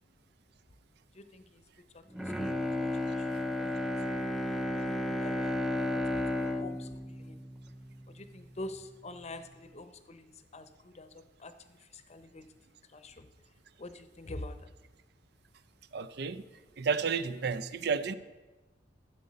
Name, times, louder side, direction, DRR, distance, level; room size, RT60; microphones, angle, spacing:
voice 1, 1.1-1.6 1.9-7.4 8.1-12.5 12.9-13.3 13.8-14.7, left 2 dB, 35° left, 10 dB, 0.8 m, -47 dB
Bowed string instrument, 2.1-8.4 8.8-8.9, left 1 dB, ahead, 0.5 m, -33 dB
voice 2, 15.9-16.4 16.8-18.1, right 5 dB, 65° right, 13 dB, 0.6 m, -31 dB
13.5 x 7.9 x 5.2 m, 1.2 s
head